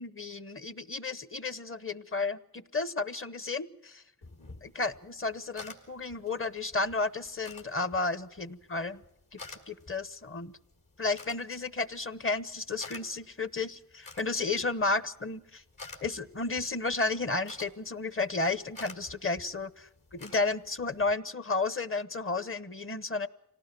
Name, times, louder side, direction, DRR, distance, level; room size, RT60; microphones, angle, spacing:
voice 1, 0.0-4.0 4.6-9.0 9.3-10.6 11.0-15.6 16.0-23.3, left 3 dB, 35° left, 15 dB, 1.0 m, -32 dB
sound 1, 4.2-21.1, left 3 dB, 65° left, 3.9 m, -52 dB
26.0 x 18.5 x 6.1 m, 0.80 s
wide cardioid pair, 60°, 36 cm